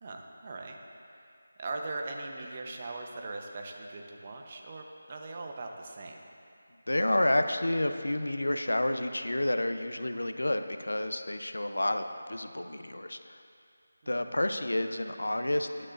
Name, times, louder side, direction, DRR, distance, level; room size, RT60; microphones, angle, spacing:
voice 1, 0.0-0.8 1.6-6.2 14.0-14.3, right 2 dB, 35° right, 2 dB, 0.9 m, -40 dB
voice 2, 6.9-13.2 14.1-15.9, left 1 dB, 80° left, 8 dB, 0.6 m, -30 dB
15.5 x 9.7 x 2.6 m, 2.5 s
figure-of-eight pair, 165°, 0 cm